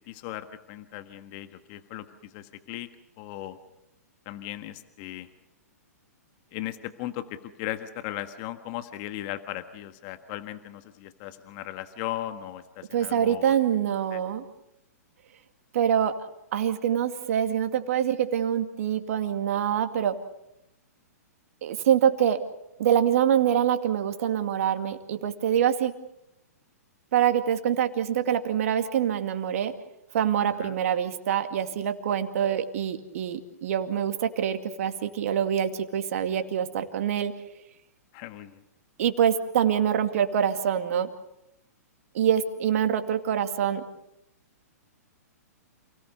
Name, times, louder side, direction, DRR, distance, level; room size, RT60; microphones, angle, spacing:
voice 1, 0.1-2.9 3.2-3.6 4.2-5.3 6.5-13.5 14.1-14.2 30.6-30.7 38.1-38.6, left 14 dB, 40° left, 9 dB, 1.5 m, -37 dB
voice 2, 12.9-14.4 15.7-16.1 16.5-20.2 21.6-22.4 22.8-25.9 27.1-29.7 30.1-37.3 39.0-41.1 42.1-43.8, right 9 dB, 60° right, 8 dB, 2.3 m, -25 dB
28.5 x 18.0 x 6.7 m, 0.86 s
hypercardioid pair, 125°, 9 cm